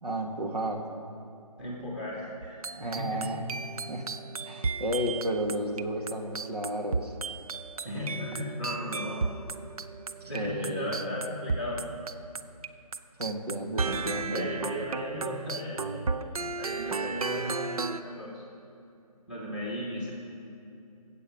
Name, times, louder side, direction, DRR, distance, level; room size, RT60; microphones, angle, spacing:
voice 1, 0.0-0.8 2.8-3.6 3.9-4.1 4.5-7.1 10.2-11.2 13.2-14.5, right 1 dB, 85° right, 2 dB, 1.9 m, -32 dB
voice 2, 1.6-3.2 7.8-9.2 10.3-11.8 14.3-18.4 19.3-20.1, left 1 dB, 5° right, -5 dB, 1.8 m, -36 dB
sound 1, 2.4-12.7 12.9-18.0, right 4 dB, 65° right, 0.6 m, -34 dB
20.5 x 8.4 x 5.1 m, 2.7 s
figure-of-eight pair, 160°, 20 cm